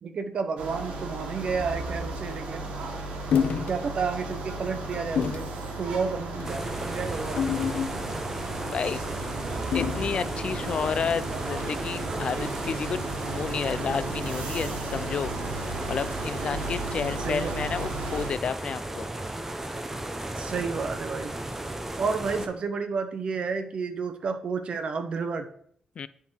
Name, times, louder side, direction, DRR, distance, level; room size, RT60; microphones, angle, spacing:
voice 1, 0.0-2.7 3.7-5.4 5.8-7.4 17.2-17.5 20.4-21.3 22.0-25.5, right 5 dB, 55° right, 8 dB, 0.9 m, -31 dB
sound 1, 0.6-18.3, right 2 dB, 85° right, 1.5 m, -35 dB
sound 2, 3.3-3.7 4.2-4.4 5.2-5.5 6.3-6.6 7.4-8.3 9.7-10.2, left 7 dB, 75° left, 0.7 m, -28 dB
sound 3, 6.4-22.5, right 1 dB, 15° right, 0.8 m, -35 dB
voice 2, 8.7-9.0 9.7-13.0 13.3-15.3 15.9-19.1 26.0-26.1, left 6 dB, 55° left, 15 dB, 0.3 m, -31 dB
10.5 x 3.8 x 4.5 m, 0.62 s
cardioid pair, 90°, 2 cm